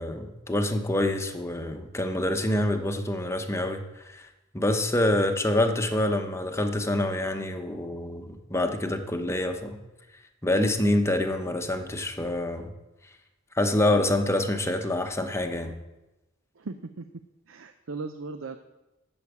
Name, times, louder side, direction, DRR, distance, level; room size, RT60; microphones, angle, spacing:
voice 1, 0.0-4.3 4.5-9.8 10.4-12.7 13.5-15.7, left 1 dB, 15° left, 6 dB, 0.9 m, -26 dB
voice 2, 16.6-17.1 17.5-18.6, right 3 dB, 80° right, 8 dB, 0.6 m, -37 dB
8.4 x 7.2 x 8.3 m, 1.0 s
head